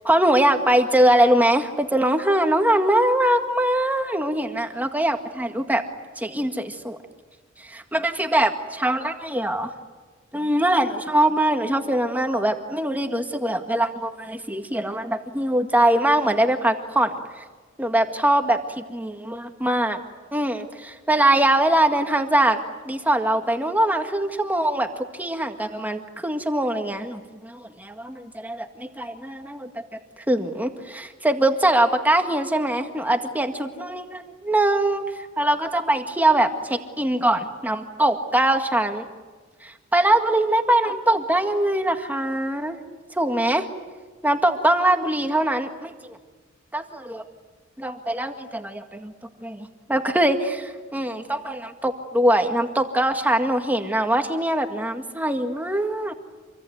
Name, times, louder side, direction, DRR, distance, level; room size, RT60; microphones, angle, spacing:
voice 1, 0.0-5.8 6.2-7.0 7.6-9.7 10.3-17.4 17.8-20.0 20.3-22.6 22.9-24.9 25.1-29.8 30.3-39.1 39.6-42.8 43.2-43.7 44.2-46.2 46.7-47.2 47.8-49.1 49.4-56.1, right 1 dB, 10° right, 5 dB, 1.9 m, -22 dB
27.5 x 23.0 x 9.3 m, 1.4 s
head